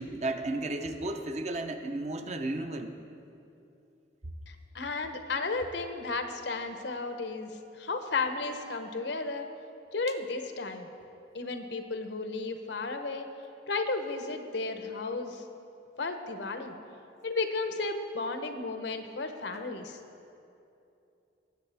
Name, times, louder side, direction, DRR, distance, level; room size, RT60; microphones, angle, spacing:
voice 1, 0.0-3.0, right 2 dB, 40° right, 6 dB, 0.6 m, -33 dB
voice 2, 4.5-7.5 7.8-9.5 9.9-10.9 11.3-13.3 13.7-15.4 16.0-16.7 17.2-20.0, left 3 dB, 75° left, 7 dB, 0.8 m, -33 dB
20.0 x 8.0 x 3.4 m, 2.7 s
head